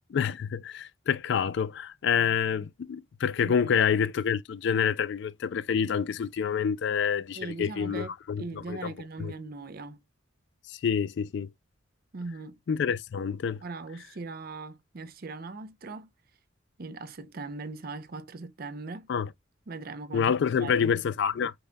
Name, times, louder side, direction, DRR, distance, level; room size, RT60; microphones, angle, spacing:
voice 1, 0.1-8.4 8.7-8.9 9.2-9.3 10.7-11.5 12.7-13.6 19.1-19.3 20.1-21.5, left 7 dB, 60° left, 0.3 m, -27 dB
voice 2, 3.4-3.7 7.3-10.0 12.1-12.6 13.6-16.1 16.8-19.1 19.7-20.3 20.6-20.9, right 3 dB, 50° right, 0.6 m, -40 dB
5.4 x 2.3 x 3.8 m
head